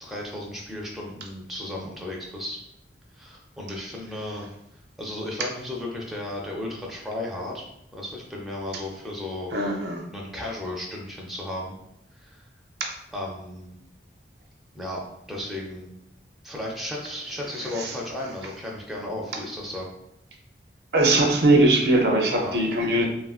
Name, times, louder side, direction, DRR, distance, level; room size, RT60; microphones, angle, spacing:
voice 1, 0.0-2.6 3.1-4.5 5.0-7.6 7.9-9.5 10.1-11.8 12.1-12.4 13.1-13.7 14.7-15.0 15.3-15.9 16.4-19.9 22.4-22.6, left 1 dB, ahead, -2 dB, 0.4 m, -34 dB
voice 2, 9.5-10.0 17.8-17.9 20.9-23.1, right 2 dB, 60° right, 2 dB, 0.5 m, -20 dB
3.2 x 2.4 x 2.3 m, 0.83 s
head